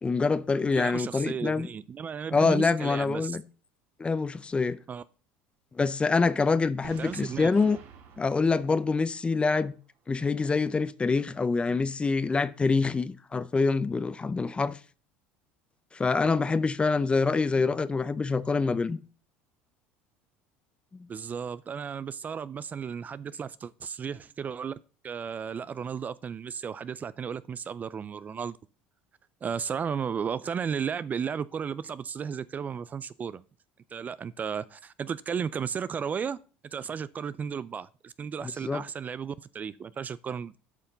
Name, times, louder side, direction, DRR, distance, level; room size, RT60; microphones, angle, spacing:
voice 1, 0.0-1.7 2.3-3.4 4.0-4.8 5.7-7.8 8.2-9.7 10.1-14.8 15.9-19.0 38.6-38.8, left 4 dB, 20° left, 0.7 m, -26 dB
voice 2, 0.7-3.4 4.9-5.0 7.0-7.5 21.1-24.7 25.0-28.6 29.4-33.4 33.9-36.4 36.6-40.6, right 7 dB, 30° right, 0.4 m, -34 dB
Boom, 6.8-9.7, right 7 dB, 65° right, 2.3 m, -50 dB
8.4 x 5.7 x 6.6 m
supercardioid pair, 90°, 5 cm